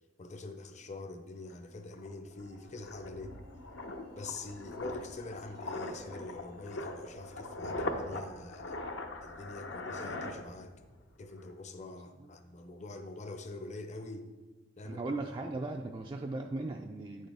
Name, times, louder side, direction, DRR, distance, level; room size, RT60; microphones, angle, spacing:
voice 1, 0.2-3.3 4.2-8.8 9.2-10.7 11.2-14.3 14.8-15.0 15.4-15.5, left 2 dB, 40° left, 7 dB, 0.6 m, -44 dB
sound 1, 1.2-8.0, left 1 dB, 85° right, 1.8 m, -58 dB
sound 2, 1.5-1.6 1.9-11.0 11.2-11.5, left 2 dB, 70° left, 0.8 m, -41 dB
voice 2, 14.8-17.3, right 2 dB, 25° right, 2 dB, 0.3 m, -38 dB
8.7 x 6.4 x 3.4 m, 1.2 s
head